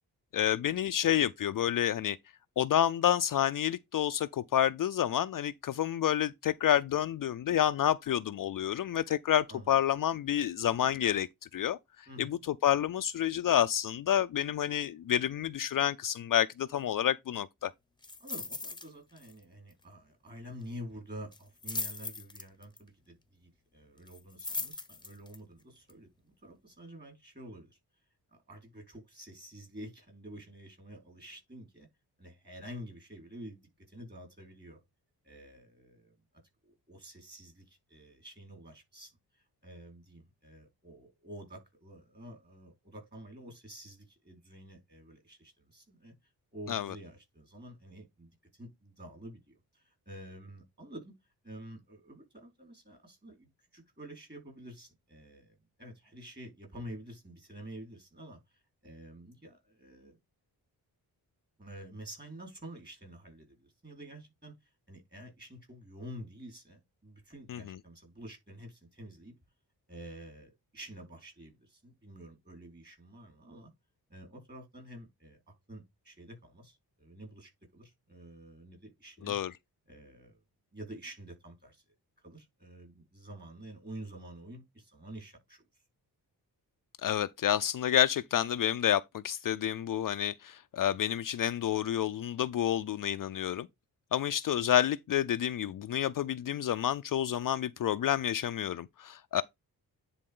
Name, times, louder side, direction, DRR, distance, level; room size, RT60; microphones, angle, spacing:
voice 1, 0.3-2.2 2.6-11.8 12.2-17.7 46.7-46.9 67.5-67.8 79.2-79.5 87.0-93.7 94.1-99.4, left 10 dB, 55° left, 0.5 m, -29 dB
sound 1, 18.0-18.9 19.2-19.4 19.7-19.8 21.3-22.8 24.1-25.4 25.9-26.0, left 3 dB, 10° left, 1.0 m, -38 dB
voice 2, 18.2-27.8 28.3-31.9 32.2-34.8 35.2-36.1 36.6-46.1 46.5-60.2 61.6-69.3 69.9-73.7 74.1-79.4 79.9-80.4 80.7-81.8 82.2-85.8, equal, 25° right, 4.9 m, -49 dB
10.0 x 4.2 x 3.7 m
wide cardioid pair, 125°, 39 cm